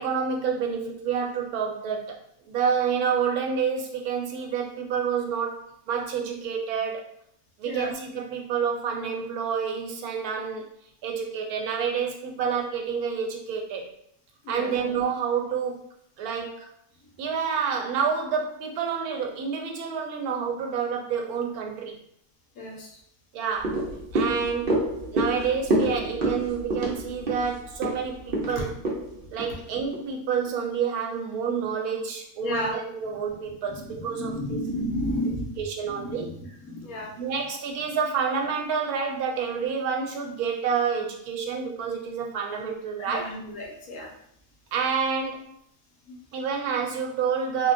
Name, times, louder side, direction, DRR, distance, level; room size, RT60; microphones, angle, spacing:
voice 1, 0.0-2.2 2.5-7.1 7.6-10.7 11.0-13.9 14.5-15.8 16.2-16.7 17.2-22.0 23.3-24.8 25.1-28.7 29.3-34.6 35.6-36.4 37.2-43.3 44.7-45.5 46.3-47.7, right 6 dB, 80° right, 2 dB, 1.1 m, -28 dB
voice 2, 22.6-22.9 24.3-24.4 32.4-32.7 33.7-35.6 35.9-36.3 36.6-37.2 43.0-44.1 46.1-46.2, left 1 dB, 75° left, -2 dB, 1.2 m, -32 dB
sound 1, 23.6-30.1 30.5-30.6, right 1 dB, 50° right, 0.7 m, -28 dB
3.5 x 2.1 x 2.5 m, 0.70 s
omnidirectional pair, 1.6 m